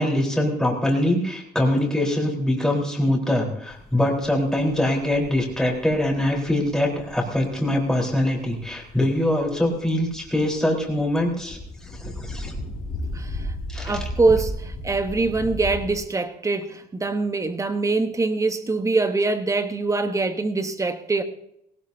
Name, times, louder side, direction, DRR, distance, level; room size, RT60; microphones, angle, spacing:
voice 1, 0.0-11.6 11.9-12.5 13.7-14.0, left 1 dB, 5° left, -2 dB, 4.0 m, -23 dB
sound 1, 3.7-16.0, left 1 dB, 50° left, 4.9 m, -35 dB
voice 2, 13.1-21.2, right 3 dB, 20° right, 9 dB, 1.1 m, -24 dB
18.0 x 17.5 x 2.7 m, 0.75 s
cardioid pair, 110°, 17 cm